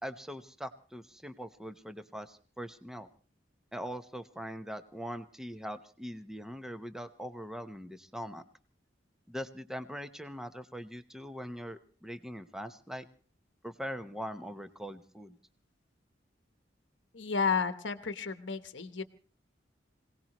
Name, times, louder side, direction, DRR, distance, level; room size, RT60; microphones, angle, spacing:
voice 1, 0.0-3.1 3.7-8.4 9.3-13.1 13.6-15.4, equal, 5° right, 9 dB, 0.9 m, -42 dB
voice 2, 17.1-19.0, left 5 dB, 85° left, 9 dB, 1.1 m, -32 dB
26.0 x 18.0 x 3.1 m, 0.39 s
head